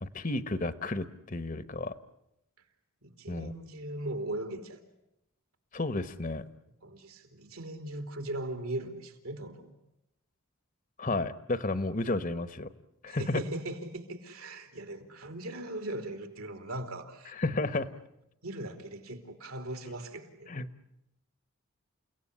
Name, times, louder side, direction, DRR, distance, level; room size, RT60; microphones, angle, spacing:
voice 1, 0.0-1.9 3.3-3.5 5.7-6.4 11.0-12.7 13.0-13.4 17.4-17.9 20.5-20.7, left 2 dB, 35° left, 14 dB, 1.0 m, -32 dB
voice 2, 3.0-4.8 6.8-9.7 13.1-17.4 18.4-20.5, right 1 dB, 75° right, 7 dB, 3.3 m, -39 dB
30.0 x 17.5 x 9.9 m, 0.86 s
head